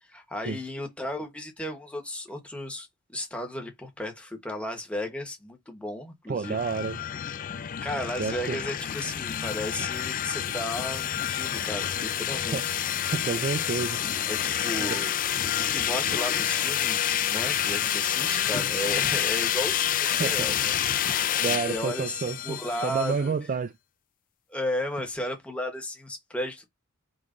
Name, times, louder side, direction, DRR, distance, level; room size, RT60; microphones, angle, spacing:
voice 1, 0.1-6.6 7.8-12.9 14.3-20.7 21.7-23.3 24.5-26.7, left 1 dB, 5° left, 1.0 m, -34 dB
voice 2, 6.3-7.0 8.2-8.6 12.4-12.6 13.0-14.0 14.8-15.0 20.1-20.5 21.1-23.7, right 5 dB, 35° right, 0.3 m, -30 dB
sound 1, 6.4-23.2, left 10 dB, 35° left, 0.4 m, -28 dB
5.1 x 3.0 x 2.4 m
head